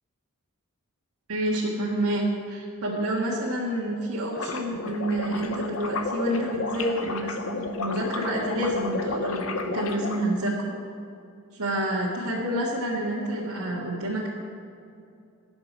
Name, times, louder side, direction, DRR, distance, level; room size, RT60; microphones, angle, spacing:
voice 1, 1.3-10.7 11.5-14.3, right 1 dB, 80° right, -6 dB, 1.7 m, -28 dB
sound 1, 4.3-10.2, left 3 dB, 70° left, 0.9 m, -32 dB
16.0 x 7.0 x 5.3 m, 2.6 s
head